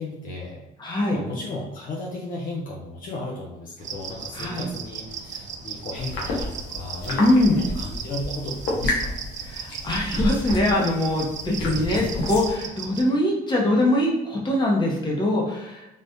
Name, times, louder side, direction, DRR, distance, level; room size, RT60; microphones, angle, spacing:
voice 1, 0.0-0.6 1.1-9.3 11.6-12.0, left 2 dB, 55° left, -2 dB, 0.7 m, -35 dB
voice 2, 0.8-1.2 4.3-4.6 7.2-7.6 9.5-15.9, left 1 dB, 25° left, -2 dB, 0.9 m, -22 dB
sound 1, 3.8-13.0, right 6 dB, 45° right, 0.4 m, -37 dB
sound 2, 6.0-12.5, left 1 dB, 85° left, 1.0 m, -31 dB
3.5 x 2.4 x 2.7 m, 0.89 s
cardioid pair, 110°, 17 cm